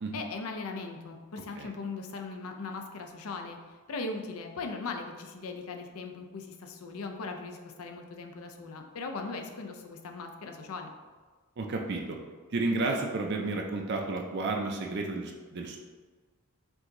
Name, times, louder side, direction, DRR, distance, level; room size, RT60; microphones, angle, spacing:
voice 1, 0.1-3.6 3.9-10.9, left 3 dB, 85° left, 4 dB, 0.5 m, -39 dB
voice 2, 11.6-12.2 12.5-15.8, right 3 dB, 50° right, 1 dB, 0.4 m, -32 dB
4.7 x 2.7 x 3.8 m, 1.4 s
head